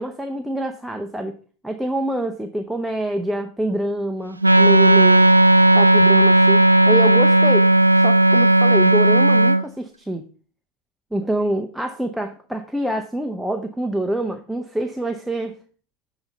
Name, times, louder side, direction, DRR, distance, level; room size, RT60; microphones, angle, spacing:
voice 1, 0.0-1.4 1.6-5.3 5.7-7.7 8.0-10.3 11.1-15.6, right 1 dB, 5° right, 4 dB, 0.5 m, -26 dB
Wind instrument woodwind instrument, 4.4-9.6, right 1 dB, 85° right, 0.3 m, -14 dB
7.1 x 3.9 x 5.3 m, 0.39 s
figure-of-eight pair, 85°, 0 cm